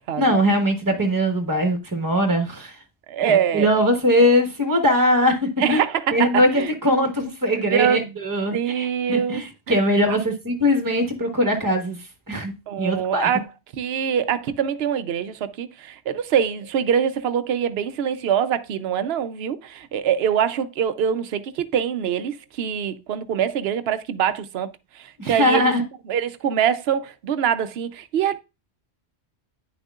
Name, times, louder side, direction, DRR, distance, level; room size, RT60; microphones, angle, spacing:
voice 1, 0.2-2.8 3.2-5.8 6.1-6.5 6.8-12.0 12.3-12.5 12.8-13.3 25.2-25.8, equal, 20° right, 1.4 m, -21 dB
voice 2, 3.1-3.7 5.6-6.7 7.5-8.2 8.5-9.8 12.7-13.5 13.7-24.7 24.9-25.7 26.1-28.4, right 8 dB, 70° right, 0.8 m, -24 dB
9.6 x 6.3 x 2.4 m
omnidirectional pair, 1.1 m